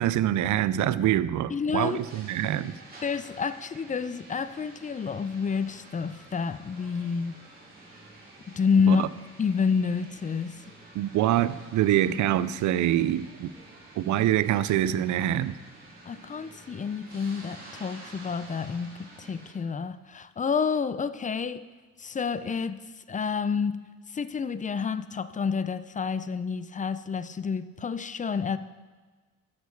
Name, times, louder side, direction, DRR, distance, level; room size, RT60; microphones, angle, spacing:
voice 1, 0.0-2.7 8.9-9.1 10.9-13.5 14.0-15.6, right 12 dB, 75° right, 16 dB, 0.5 m, -25 dB
voice 2, 1.5-2.0 3.0-7.4 8.5-9.0 9.4-10.6 16.1-21.6 22.0-23.8 24.1-28.6, left 6 dB, 25° left, 14 dB, 0.5 m, -29 dB
sound 1, 1.8-19.5, right 2 dB, 30° right, 3.1 m, -50 dB
14.0 x 6.7 x 4.6 m, 1.4 s
cardioid pair, 90°, 30 cm